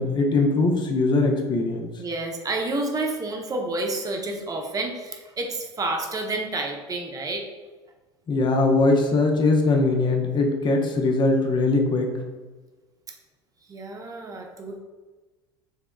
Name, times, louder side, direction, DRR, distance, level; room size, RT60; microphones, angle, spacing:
voice 1, 0.0-1.9 8.3-12.2, left 3 dB, 30° left, 3 dB, 0.9 m, -21 dB
voice 2, 2.0-7.5 13.7-14.8, right 2 dB, 25° right, 2 dB, 0.9 m, -29 dB
6.5 x 3.4 x 2.2 m, 1.3 s
figure-of-eight pair, 70°, 14 cm